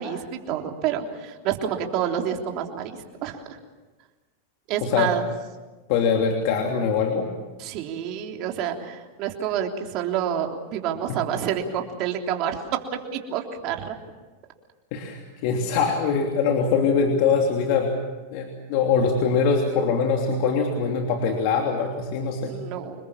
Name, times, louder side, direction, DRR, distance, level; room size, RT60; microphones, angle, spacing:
voice 1, 0.0-3.4 4.7-5.2 7.6-13.9 22.5-23.0, right 9 dB, 50° right, 2 dB, 3.4 m, -28 dB
voice 2, 5.9-7.3 14.9-17.9 18.3-22.6, left 5 dB, 60° left, 2 dB, 3.1 m, -23 dB
27.0 x 21.5 x 7.3 m, 1.2 s
hypercardioid pair, 115°, 0 cm